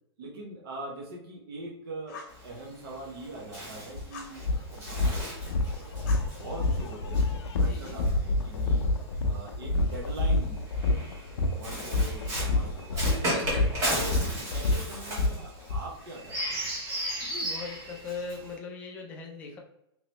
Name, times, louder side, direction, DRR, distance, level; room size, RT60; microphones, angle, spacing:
voice 1, 0.2-6.0 6.4-8.8 9.3-11.1 11.4-13.2 13.9-14.1 14.5-16.7, right 2 dB, 60° right, -2 dB, 0.9 m, -43 dB
Fire, 2.1-2.4 4.1-4.4 6.1-7.0, left 4 dB, 40° left, 0.8 m, -46 dB
Bird, 2.3-8.8 9.8-18.6, right 1 dB, 20° right, 1.2 m, -36 dB
sound 1, 3.9-4.0 4.4-15.8, left 2 dB, 80° left, 0.5 m, -28 dB
voice 2, 7.6-8.0 13.2-13.7 17.2-19.6, left 4 dB, 10° left, 0 dB, 0.3 m, -40 dB
3.1 x 2.9 x 3.0 m, 0.79 s
hypercardioid pair, 175°, 14 cm